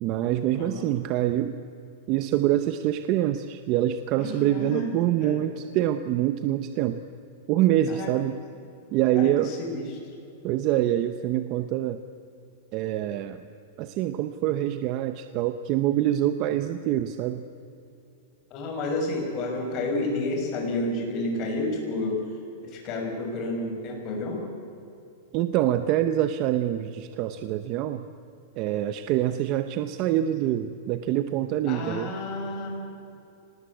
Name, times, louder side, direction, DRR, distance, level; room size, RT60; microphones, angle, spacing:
voice 1, 0.0-1.6 2.1-7.0 7.5-8.4 8.9-9.6 10.4-12.0 12.7-13.5 13.8-17.4 25.3-28.0 28.6-32.1, right 12 dB, 35° right, 10 dB, 0.8 m, -25 dB
voice 2, 4.2-4.9 5.2-5.4 7.9-8.1 9.2-9.9 18.5-22.2 22.6-24.4 31.7-32.7, left 2 dB, 30° left, 1 dB, 5.9 m, -30 dB
25.0 x 19.5 x 8.5 m, 2.7 s
supercardioid pair, 160°, 0 cm